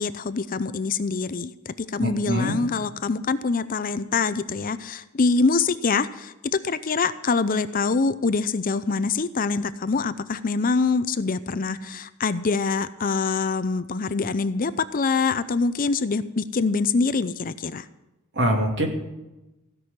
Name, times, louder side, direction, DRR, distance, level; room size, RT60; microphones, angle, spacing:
voice 1, 0.0-17.9, left 4 dB, 40° left, 13 dB, 0.5 m, -25 dB
voice 2, 2.0-2.6 18.4-18.9, equal, 55° right, 1 dB, 2.5 m, -23 dB
16.0 x 6.2 x 9.6 m, 1.0 s
head